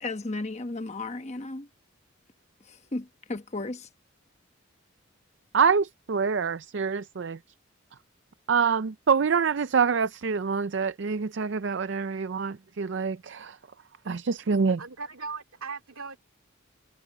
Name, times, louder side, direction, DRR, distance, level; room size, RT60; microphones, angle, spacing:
voice 1, 0.0-1.7 2.6-3.9, left 2 dB, 30° left, 1.1 m, -34 dB
voice 2, 5.5-7.4 8.5-13.6 14.1-14.8, right 5 dB, 60° right, 0.5 m, -26 dB
voice 3, 14.8-16.2, right 4 dB, 90° right, 2.3 m, -38 dB
head